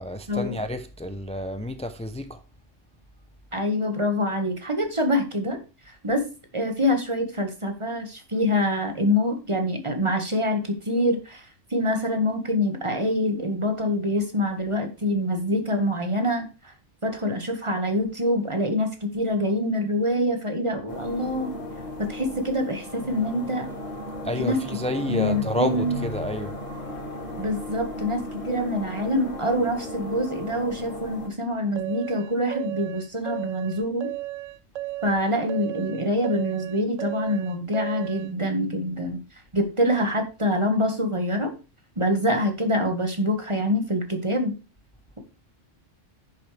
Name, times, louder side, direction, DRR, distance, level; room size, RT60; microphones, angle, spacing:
voice 1, 0.0-2.4 24.2-26.6, left 1 dB, 10° left, 0.3 m, -30 dB
voice 2, 3.5-5.6 5.9-6.3 6.5-16.7 17.0-21.6 22.0-23.7 24.4-24.6 25.1-26.0 27.4-28.2 28.5-34.1 35.0-39.2 39.5-41.6 42.0-44.5, left 1 dB, 25° right, 1.7 m, -25 dB
sound 1, 20.9-31.3, left 1 dB, 55° left, 2.9 m, -35 dB
sound 2, 31.8-38.3, right 16 dB, 80° right, 1.1 m, -34 dB
9.8 x 7.2 x 3.3 m
omnidirectional pair, 1.3 m